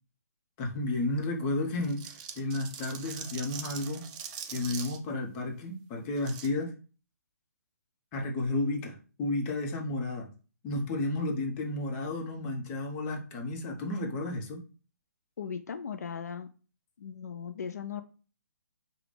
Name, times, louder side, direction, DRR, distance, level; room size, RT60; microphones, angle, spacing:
voice 1, 0.6-4.0 4.5-6.7 8.1-10.3 10.6-14.6, left 2 dB, 25° left, 1 dB, 0.9 m, -32 dB
sound 1, 1.8-5.0 6.2-6.5, right 8 dB, 30° right, 0.5 m, -42 dB
voice 2, 15.4-16.5 17.0-18.0, left 7 dB, 70° left, 8 dB, 0.4 m, -38 dB
4.9 x 2.3 x 3.3 m, 0.37 s
hypercardioid pair, 135°, 9 cm